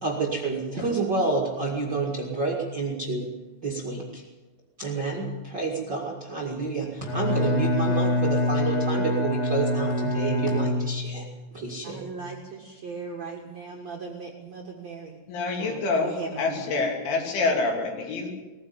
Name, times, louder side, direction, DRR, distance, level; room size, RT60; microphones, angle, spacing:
voice 1, 0.0-3.3 3.6-4.2 4.8-11.2 11.5-12.2, right 3 dB, 40° right, -1 dB, 1.6 m, -29 dB
Bowed string instrument, 7.0-11.3, left 1 dB, 60° left, 5.3 m, -25 dB
voice 2, 11.8-15.2 15.6-16.8, right 4 dB, 55° right, 0 dB, 1.9 m, -38 dB
voice 3, 15.3-18.3, left 3 dB, 75° left, 1 dB, 5.3 m, -27 dB
20.0 x 15.0 x 8.8 m, 1.3 s
omnidirectional pair, 5.6 m